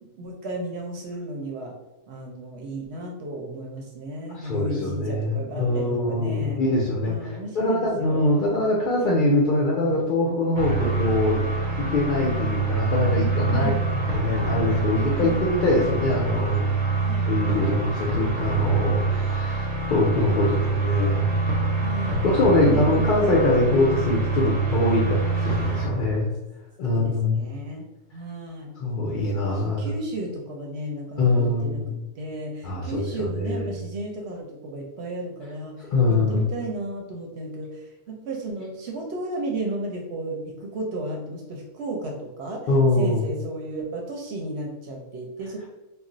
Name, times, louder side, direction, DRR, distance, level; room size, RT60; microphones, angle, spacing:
voice 1, 0.0-1.7 2.1-6.6 7.0-8.6 13.5-13.8 15.2-15.3 17.0-17.3 21.8-22.4 22.7-23.0 26.9-27.9 28.1-28.7 29.5-35.8 36.1-42.6 43.0-45.7, right 1 dB, 65° right, 0 dB, 0.8 m, -34 dB
voice 2, 4.3-11.4 11.8-13.7 14.1-16.7 17.3-21.3 22.2-26.3 26.8-27.4 28.8-29.9 31.2-31.9 32.6-33.7 35.9-36.4 42.7-43.2, left 2 dB, 65° left, -3 dB, 0.5 m, -23 dB
sound 1, 10.6-26.2, right 3 dB, 90° right, 1.0 m, -25 dB
2.3 x 2.0 x 3.7 m, 1.0 s
omnidirectional pair, 1.4 m